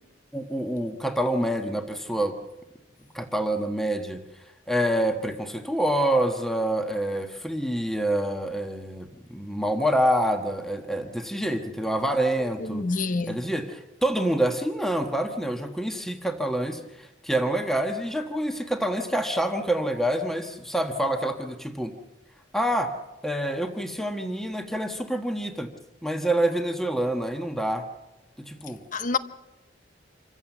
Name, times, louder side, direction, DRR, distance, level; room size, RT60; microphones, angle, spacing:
voice 1, 0.3-2.4 3.1-4.2 4.7-12.9 13.3-21.9 22.5-23.0 23.2-25.7 26.0-27.9 28.5-28.8, right 1 dB, ahead, 1.3 m, -27 dB
voice 2, 12.6-13.4 28.9-29.2, left 4 dB, 40° left, 0.8 m, -27 dB
27.0 x 15.0 x 7.3 m
head